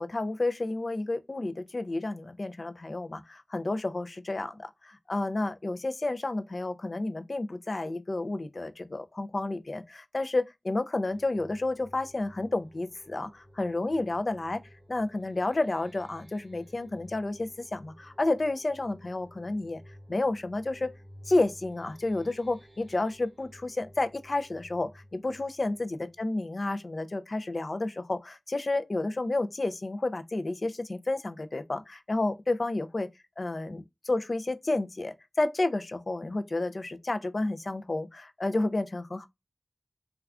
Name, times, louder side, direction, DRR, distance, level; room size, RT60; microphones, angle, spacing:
voice 1, 0.0-14.6 14.9-19.8 20.1-20.9 21.3-33.1 33.4-39.3, left 2 dB, 60° left, 0.3 m, -31 dB
sound 1, 11.1-26.6, equal, 50° right, 0.6 m, -54 dB
2.3 x 2.2 x 3.5 m
wide cardioid pair, 65°, 0 cm